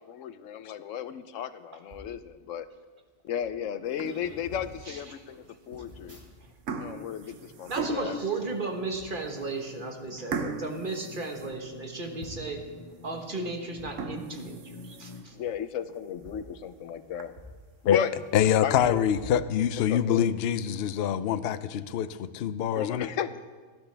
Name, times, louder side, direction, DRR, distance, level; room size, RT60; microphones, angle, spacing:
voice 1, 0.0-2.7 3.2-6.2 6.8-8.2 15.3-17.3 17.8-18.1 18.6-19.0 19.9-20.3 22.7-23.4, left 8 dB, 90° left, 12 dB, 1.0 m, -34 dB
sound 1, 1.8-2.1 3.0-3.1 3.3-3.6 4.1-4.7 5.7-6.7 7.0-8.4 8.9-9.3 10.0-10.4 10.9-11.0 11.3-11.4 12.2-12.6 13.7-13.9 15.3-15.5 16.1-17.6 17.9-18.0 18.7-19.9 20.4-20.6, equal, 65° right, 3.7 m, -49 dB
sound 2, 3.9-4.4 5.0-5.1 5.9-6.2 6.4-8.3 8.9-9.0 9.4-9.5 10.3-12.1 12.5-12.6 13.1-13.2 13.8-15.4 15.9-16.0 16.4-16.5 16.8-16.9 17.2-17.3 18.2-18.8, right 4 dB, 85° right, 1.2 m, -38 dB
sound 3, 5.5-15.2, left 3 dB, 30° left, 0.7 m, -50 dB
voice 2, 7.7-12.6 13.0-15.3, right 3 dB, 45° right, 2 dB, 1.4 m, -35 dB
voice 3, 18.3-23.1, left 9 dB, 60° left, 13 dB, 0.7 m, -25 dB
18.0 x 12.5 x 3.4 m, 1.4 s
omnidirectional pair, 1.3 m